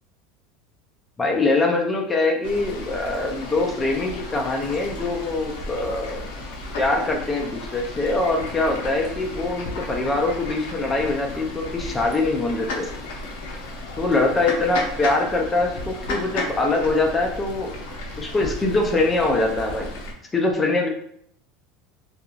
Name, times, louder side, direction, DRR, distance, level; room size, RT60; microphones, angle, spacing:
voice 1, 1.2-6.2 6.8-13.0 14.0-17.7 18.2-19.9 20.3-20.9, left 2 dB, 10° left, 1 dB, 0.4 m, -23 dB
Fowl / Bird, 2.4-20.1, left 2 dB, 80° left, 0.7 m, -34 dB
2.8 x 2.3 x 2.4 m, 0.67 s
cardioid pair, 175°, 0 cm